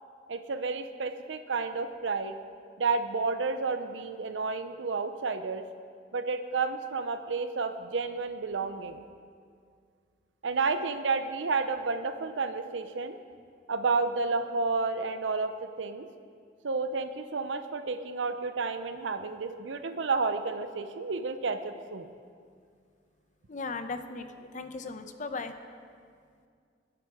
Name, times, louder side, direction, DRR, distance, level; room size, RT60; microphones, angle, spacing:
voice 1, 0.3-2.4 2.8-5.6 6.1-9.0 10.4-13.2 13.7-16.1 16.6-22.1, right 4 dB, 90° right, 9 dB, 0.6 m, -31 dB
voice 2, 23.5-25.5, left 4 dB, 45° left, 8 dB, 0.8 m, -37 dB
21.0 x 7.8 x 4.9 m, 2.2 s
head